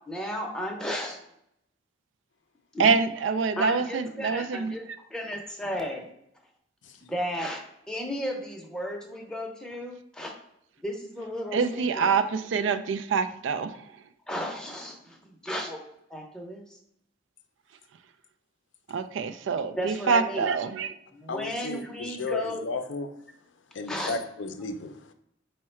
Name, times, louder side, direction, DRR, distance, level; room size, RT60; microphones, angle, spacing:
voice 1, 0.1-1.2 2.7-2.9 3.6-4.8 5.1-6.1 7.1-7.6 7.9-10.3 10.8-12.1 14.3-16.8 19.8-20.5 21.1-22.6 23.9-24.2, equal, 5° left, 0 dB, 0.6 m, -34 dB
voice 2, 2.8-4.7 11.5-13.8 18.9-20.9, right 5 dB, 80° right, 10 dB, 0.4 m, -26 dB
voice 3, 21.3-23.1 23.7-25.1, left 3 dB, 75° left, 8 dB, 0.4 m, -34 dB
4.6 x 2.1 x 4.4 m, 0.76 s
head